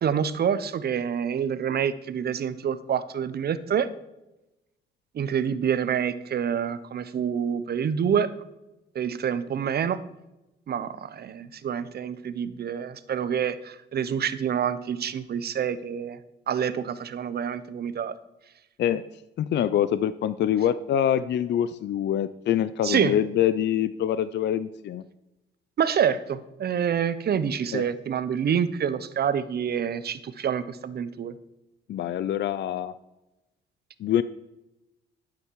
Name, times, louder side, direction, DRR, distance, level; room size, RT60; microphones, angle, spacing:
voice 1, 0.0-3.9 5.1-8.3 8.9-10.0 10.7-16.2 16.5-18.1 22.8-23.1 25.8-31.3, right 8 dB, 55° right, 14 dB, 0.9 m, -27 dB
voice 2, 19.4-25.1 27.7-27.8 31.9-32.9 34.0-34.2, left 10 dB, 60° left, 15 dB, 0.5 m, -25 dB
11.5 x 8.7 x 4.7 m, 0.94 s
cardioid pair, 90°, 20 cm